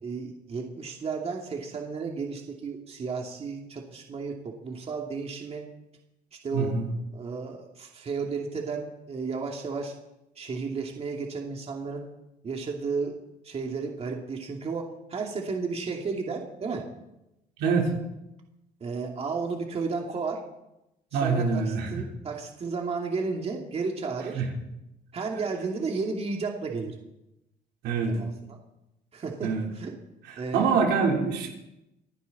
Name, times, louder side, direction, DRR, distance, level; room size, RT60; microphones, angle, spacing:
voice 1, 0.0-5.6 6.4-6.7 7.1-9.9 10.4-12.0 12.4-13.1 13.4-16.8 18.8-20.4 21.1-24.4 25.1-26.9 28.1-28.6 29.1-29.9 30.4-30.7, right 4 dB, 35° right, 1 dB, 2.5 m, -33 dB
voice 2, 6.5-6.9 17.6-17.9 21.1-22.0 24.3-24.5 27.8-28.2 29.4-29.7 30.5-31.5, right 5 dB, 90° right, 0 dB, 3.7 m, -25 dB
27.5 x 9.7 x 4.2 m, 0.90 s
cardioid pair, 110°, 17 cm